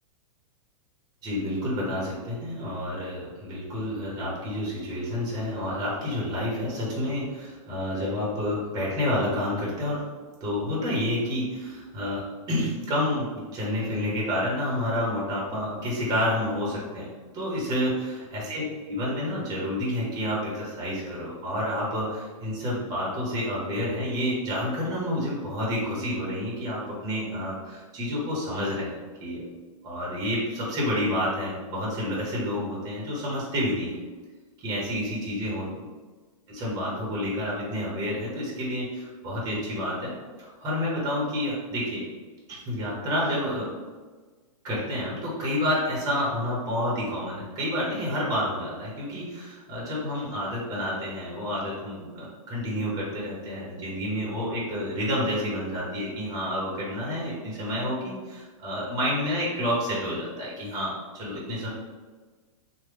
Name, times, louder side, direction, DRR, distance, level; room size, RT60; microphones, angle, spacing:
voice 1, 1.2-10.1 10.4-17.1 17.3-28.9 29.2-29.5 29.8-34.0 34.6-35.6 36.5-40.1 40.4-42.0 42.5-43.7 44.6-61.7, left 1 dB, 20° right, -5 dB, 1.0 m, -29 dB
3.1 x 2.2 x 3.3 m, 1.4 s
supercardioid pair, 150°, 18 cm